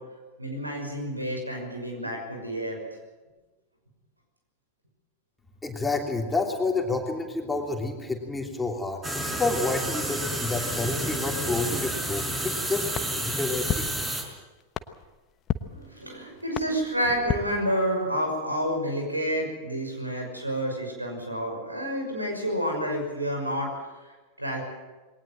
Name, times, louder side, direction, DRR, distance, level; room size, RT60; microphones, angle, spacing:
voice 1, 0.4-2.8 15.7-23.7 24.4-24.6, equal, 85° right, 2 dB, 6.0 m, -29 dB
voice 2, 5.6-13.9, left 3 dB, 10° left, 2 dB, 3.0 m, -29 dB
sound 1, 9.0-14.2, right 1 dB, 10° right, 5.4 m, -30 dB
sound 2, 12.9-18.3, left 8 dB, 30° left, 1.1 m, -36 dB
21.5 x 19.0 x 7.8 m, 1.2 s
figure-of-eight pair, 90°, 0 cm